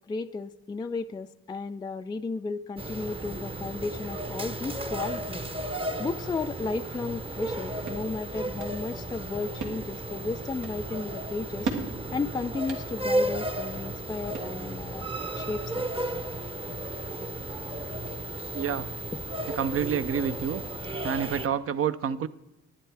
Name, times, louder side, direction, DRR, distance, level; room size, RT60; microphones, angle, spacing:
voice 1, 0.1-5.4 6.0-11.7 12.1-15.1 15.4-15.9, left 4 dB, 15° left, 8 dB, 0.3 m, -34 dB
sound 1, 2.8-21.5, right 1 dB, 20° right, 0.8 m, -34 dB
sound 2, 8.0-14.9, right 4 dB, 80° right, 2.0 m, -41 dB
voice 2, 18.5-18.9 19.5-20.6 21.0-22.3, right 8 dB, 50° right, 13 dB, 0.6 m, -28 dB
11.0 x 10.0 x 4.8 m, 0.92 s
cardioid pair, 90°, 30 cm